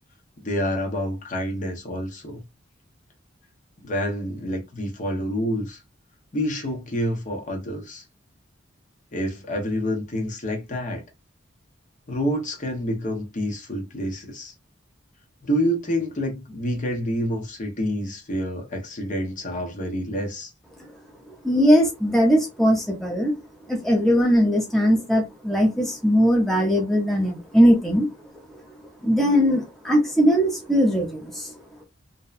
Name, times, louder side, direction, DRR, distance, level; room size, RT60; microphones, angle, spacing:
voice 1, 0.4-2.4 3.8-5.8 6.3-8.0 9.1-11.0 12.1-14.5 15.4-20.5, equal, 40° left, 0.7 m, -28 dB
voice 2, 21.4-23.3 23.7-28.1 29.0-31.5, equal, ahead, 0.6 m, -20 dB
2.6 x 2.1 x 2.3 m
head